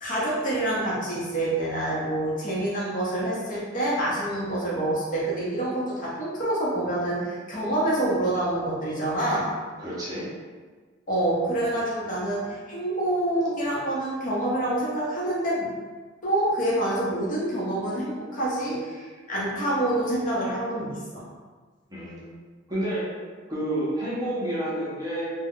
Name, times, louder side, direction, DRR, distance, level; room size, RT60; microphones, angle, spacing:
voice 1, 0.0-9.5 11.1-15.7 16.2-21.2, right 1 dB, 40° left, -7 dB, 0.8 m, -27 dB
voice 2, 9.8-10.3 21.9-22.2 22.7-23.1 23.5-25.3, right 1 dB, 20° right, -8 dB, 0.7 m, -29 dB
2.4 x 2.2 x 3.5 m, 1.4 s
head